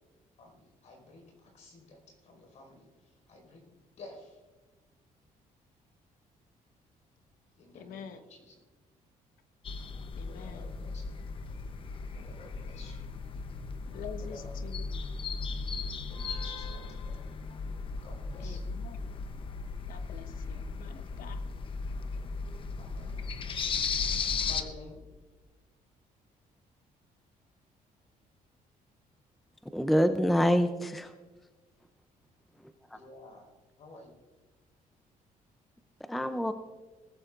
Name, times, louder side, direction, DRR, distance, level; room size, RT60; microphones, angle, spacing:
voice 1, 0.4-2.9 3.3-3.6 4.0-4.4 7.6-8.6 10.2-11.0 12.1-13.1 14.1-14.5 16.1-17.3 18.0-18.7 22.8-23.2 24.4-25.0 32.9-33.4 33.8-34.1, left 2 dB, 55° left, 2 dB, 4.9 m, -51 dB
voice 2, 7.7-8.2 10.2-10.7 13.9-14.8 18.4-19.0 19.9-21.4, left 7 dB, 75° left, 8 dB, 1.2 m, -46 dB
sound 1, 9.6-24.6, left 4 dB, 35° left, 0.8 m, -36 dB
voice 3, 29.7-31.1 32.9-33.0 36.1-36.5, equal, ahead, 9 dB, 0.5 m, -26 dB
19.5 x 14.5 x 2.5 m, 1.3 s
cardioid pair, 170°, 15 cm